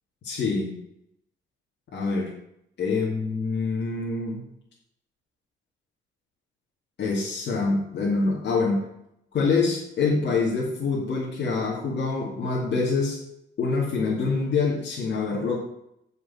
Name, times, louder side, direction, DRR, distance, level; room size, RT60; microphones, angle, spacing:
voice 1, 0.2-0.7 1.9-2.3 2.8-4.4 7.0-8.9 9.3-13.2 13.6-15.6, left 4 dB, 60° left, -4 dB, 2.6 m, -25 dB
7.9 x 5.5 x 7.1 m, 0.78 s
cardioid pair, 90°, 20 cm